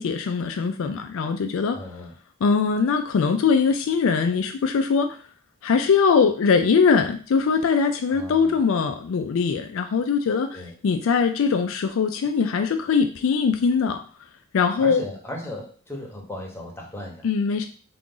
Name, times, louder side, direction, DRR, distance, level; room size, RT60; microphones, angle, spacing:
voice 1, 0.0-1.8 2.4-5.2 5.6-14.0 14.5-15.0 17.2-17.7, left 5 dB, 65° left, 6 dB, 0.3 m, -21 dB
voice 2, 1.7-2.1 8.1-8.6 10.5-10.7 14.8-17.3, left 1 dB, 10° left, -2 dB, 0.9 m, -36 dB
3.8 x 2.4 x 3.8 m, 0.40 s
head